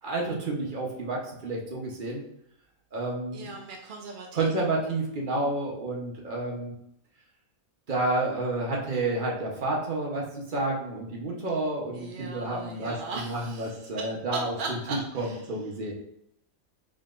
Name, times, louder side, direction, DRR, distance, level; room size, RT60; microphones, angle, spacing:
voice 1, 0.0-2.2 2.9-3.5 4.3-6.7 7.9-15.9, right 2 dB, 40° right, -2 dB, 1.0 m, -30 dB
voice 2, 3.3-4.3 11.9-13.7 14.6-15.0, right 4 dB, 65° right, 1 dB, 0.5 m, -38 dB
4.3 x 3.7 x 2.5 m, 0.74 s
omnidirectional pair, 1.5 m